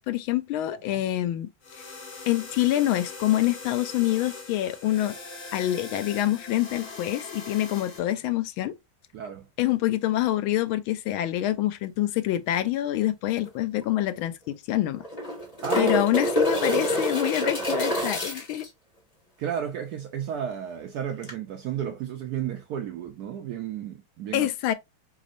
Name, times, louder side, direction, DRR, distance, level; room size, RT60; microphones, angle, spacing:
voice 1, 0.1-1.5 2.3-5.1 5.5-8.7 9.6-15.0 15.8-18.7 24.3-24.7, left 14 dB, 80° left, 1.4 m, -26 dB
sound 1, 1.6-8.0, left 3 dB, 35° left, 1.3 m, -41 dB
voice 2, 9.1-9.5 15.6-15.9 19.4-24.5, right 9 dB, 75° right, 0.9 m, -33 dB
sound 2, 13.5-13.6 13.8-13.9 15.0-18.7 21.2-21.3, equal, 20° left, 1.8 m, -26 dB
5.1 x 3.6 x 2.5 m
omnidirectional pair, 2.3 m